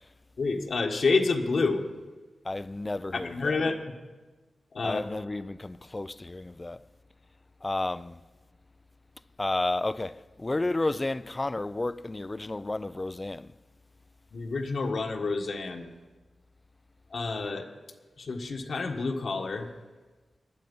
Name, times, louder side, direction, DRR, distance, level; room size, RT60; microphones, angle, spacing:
voice 1, 0.4-1.8 3.1-3.9 4.7-5.1 14.3-15.9 17.1-17.7 18.2-19.7, left 3 dB, 65° left, 1.6 m, -28 dB
voice 2, 2.5-3.6 4.8-6.8 7.6-8.2 9.4-13.5, left 2 dB, 25° left, 0.4 m, -31 dB
19.5 x 12.5 x 5.4 m
wide cardioid pair, 120°, 0 cm